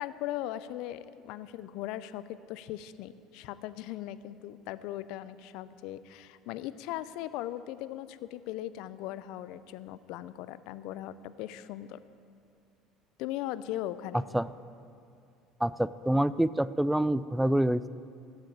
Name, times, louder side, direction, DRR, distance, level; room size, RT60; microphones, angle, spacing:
voice 1, 0.0-12.0 13.2-14.2, left 13 dB, 70° left, 14 dB, 0.5 m, -39 dB
voice 2, 15.6-17.9, right 1 dB, 5° right, 17 dB, 0.4 m, -26 dB
14.0 x 6.6 x 8.9 m, 2.4 s
hypercardioid pair, 80°, 0 cm